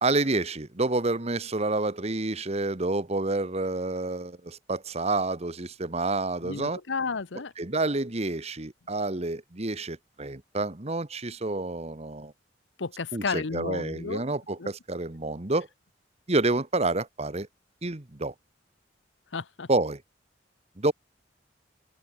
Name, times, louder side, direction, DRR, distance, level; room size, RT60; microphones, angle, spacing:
voice 1, 0.0-6.8 7.6-12.3 13.1-15.7 16.3-17.5 17.8-18.3 19.7-20.0 20.8-20.9, right 2 dB, 35° right, 1.3 m, -28 dB
voice 2, 6.4-7.5 12.8-14.2 14.6-14.7 19.3-19.7, left 4 dB, 75° left, 0.9 m, -32 dB
open air
head